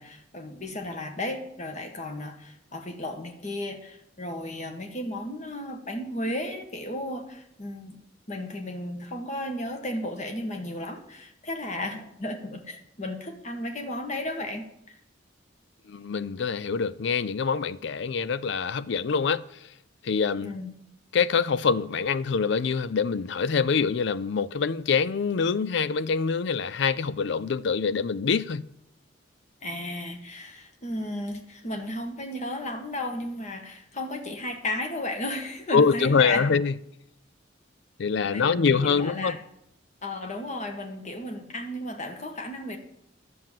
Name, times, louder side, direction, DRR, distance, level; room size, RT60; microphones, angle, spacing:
voice 1, 0.0-8.0 8.3-14.9 20.4-20.7 29.6-36.4 38.2-39.4 40.0-42.8, left 1 dB, 40° left, 1.7 m, -34 dB
voice 2, 15.9-19.4 20.0-20.5 21.1-28.6 35.7-36.7 38.0-39.4, left 5 dB, 65° left, 0.5 m, -25 dB
11.0 x 7.7 x 7.5 m
head